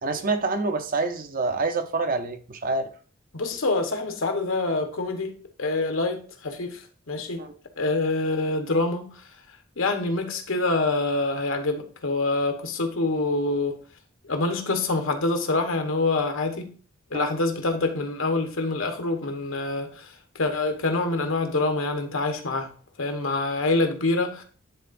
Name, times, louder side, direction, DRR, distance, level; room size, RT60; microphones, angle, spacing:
voice 1, 0.0-2.9 7.4-7.5 17.1-17.3, right 3 dB, 45° right, 0.7 m, -27 dB
voice 2, 3.3-5.3 5.6-7.4 7.8-9.2 9.8-13.8 14.2-16.7 17.1-22.7 23.0-24.4, left 2 dB, 80° left, 1.1 m, -26 dB
10.5 x 3.8 x 2.6 m
head